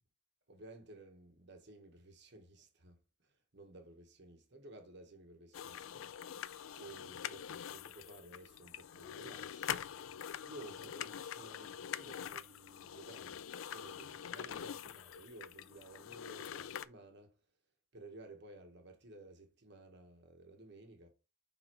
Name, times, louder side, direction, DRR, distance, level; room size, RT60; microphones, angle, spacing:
voice 1, 0.5-3.0 3.5-6.0 6.8-9.9 10.4-13.4 13.7-17.3 17.9-21.1, right 2 dB, 55° right, 1.3 m, -55 dB
sound 1, 5.5-16.8, left 9 dB, 70° left, 0.4 m, -45 dB
6.1 x 3.8 x 4.5 m
head